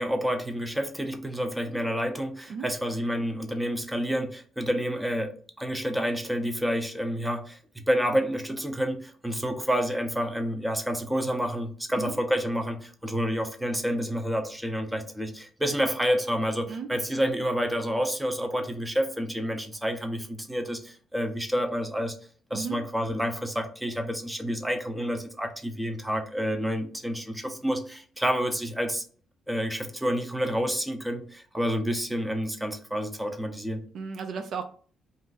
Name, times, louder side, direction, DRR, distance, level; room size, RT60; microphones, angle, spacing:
voice 1, 0.0-22.1 22.5-29.0 29.5-33.8, equal, 5° right, 5 dB, 0.6 m, -29 dB
voice 2, 33.9-34.6, right 5 dB, 65° right, 7 dB, 0.4 m, -34 dB
2.6 x 2.5 x 3.9 m, 0.43 s
cardioid pair, 90°, 0 cm